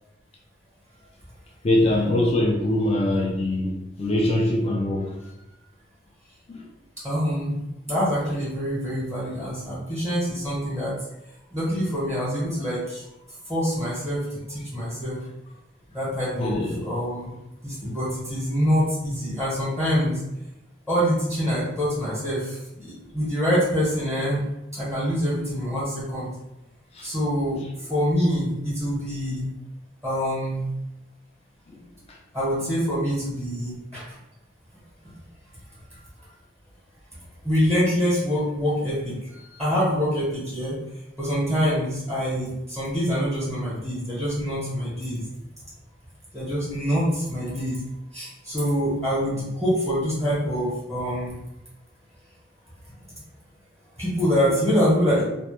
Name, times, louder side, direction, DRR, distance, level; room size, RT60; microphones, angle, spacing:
voice 1, 1.6-5.2 6.5-6.7 14.8-14.9 16.3-16.9 26.9-27.1 31.7-32.2, left 1 dB, 30° left, -1 dB, 0.4 m, -23 dB
voice 2, 7.0-7.6 7.9-10.9 11.5-13.0 13.5-14.2 14.5-15.2 15.9-17.3 17.6-20.1 20.9-22.6 22.8-24.4 24.7-26.3 27.0-27.6 27.9-29.4 30.0-30.6 32.3-34.0 37.4-39.1 39.6-40.7 41.2-45.2 46.3-47.8 48.1-51.3 54.0-55.2, equal, ahead, -9 dB, 0.8 m, -25 dB
2.1 x 2.0 x 2.9 m, 0.91 s
head